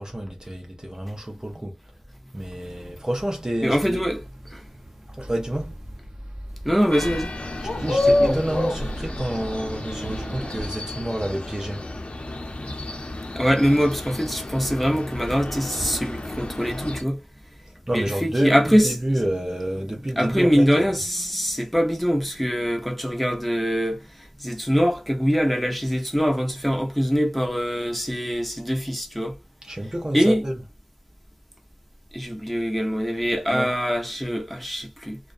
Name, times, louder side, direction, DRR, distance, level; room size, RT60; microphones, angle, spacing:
voice 1, 0.0-1.8 2.3-4.0 5.2-5.7 7.6-11.8 17.9-20.9 29.7-30.5 33.5-33.7, right 1 dB, 30° right, 0.5 m, -29 dB
sound 1, 2.3-10.7, right 1 dB, 75° right, 0.5 m, -39 dB
voice 2, 2.5-2.9 3.6-4.7 6.6-7.3 8.0-8.4 12.6-12.7 13.3-17.2 17.9-19.2 20.1-29.3 29.8-30.5 32.1-35.2, equal, 5° left, 0.8 m, -23 dB
sound 2, 6.9-17.0, left 2 dB, 80° left, 0.5 m, -29 dB
2.4 x 2.1 x 2.5 m
wide cardioid pair, 45°, 2 cm